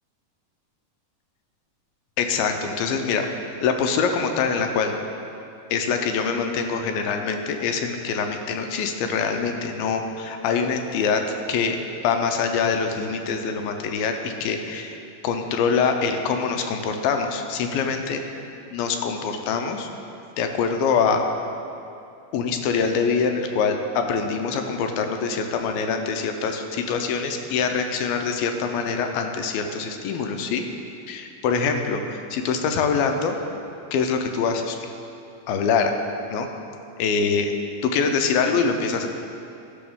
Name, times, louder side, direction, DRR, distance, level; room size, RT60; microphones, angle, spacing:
voice 1, 2.2-3.3 3.6-4.9 5.7-11.2 11.5-11.8 12.0-15.0 15.2-18.2 18.7-19.9 20.4-21.2 22.3-30.6 31.1-33.4 33.9-34.8 35.5-35.9 36.3-36.5 37.0-37.5 37.8-39.1, left 5 dB, 80° left, 5 dB, 2.3 m, -24 dB
13.5 x 6.1 x 3.6 m, 2.6 s
omnidirectional pair, 4.3 m